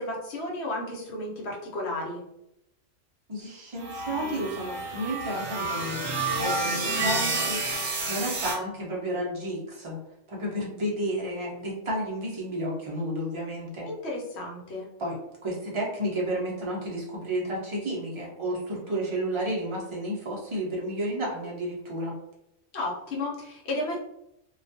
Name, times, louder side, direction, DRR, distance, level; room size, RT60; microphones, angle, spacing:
voice 1, 0.0-2.2 13.9-14.9 22.7-24.0, left 1 dB, 60° left, -2 dB, 0.9 m, -33 dB
voice 2, 3.3-10.0 10.3-13.9 15.0-22.1, right 1 dB, 45° right, -2 dB, 0.4 m, -32 dB
sound 1, 3.8-8.6, right 2 dB, 65° right, 0.9 m, -29 dB
2.3 x 2.2 x 2.5 m, 0.81 s
omnidirectional pair, 1.3 m